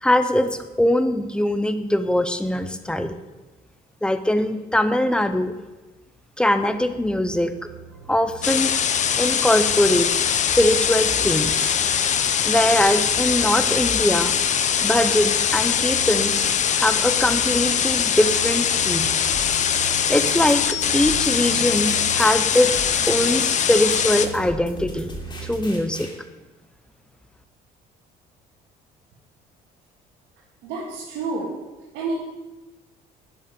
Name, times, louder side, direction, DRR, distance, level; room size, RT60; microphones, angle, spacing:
voice 1, 0.0-3.1 4.0-5.5 6.4-7.5 8.1-8.7 9.2-10.1 10.3-14.3 14.8-19.1 20.1-22.7 23.1-25.1 25.4-26.1, left 1 dB, 5° left, 10 dB, 0.7 m, -22 dB
sound 1, 7.2-25.8, right 7 dB, 75° right, 1.2 m, -40 dB
sound 2, 8.4-24.3, left 8 dB, 45° left, 0.7 m, -22 dB
sound 3, 19.3-26.2, left 3 dB, 25° left, 2.8 m, -40 dB
voice 2, 30.6-31.5 31.9-32.1, right 3 dB, 90° right, -5 dB, 2.0 m, -29 dB
11.0 x 5.2 x 6.9 m, 1.1 s
cardioid pair, 110°, 17 cm